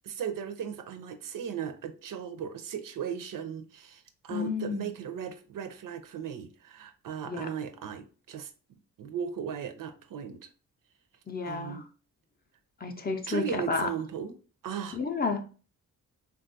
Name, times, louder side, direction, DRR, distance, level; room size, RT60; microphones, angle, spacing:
voice 1, 0.0-8.5 9.0-10.5 11.4-11.9 13.3-14.3 14.6-15.0, right 8 dB, 70° right, 0.5 m, -37 dB
voice 2, 4.3-4.9 7.3-7.5 11.3-11.8 12.8-13.9 14.9-15.4, left 4 dB, 30° left, 0.4 m, -31 dB
3.4 x 2.3 x 2.5 m
wide cardioid pair, 100°, 34 cm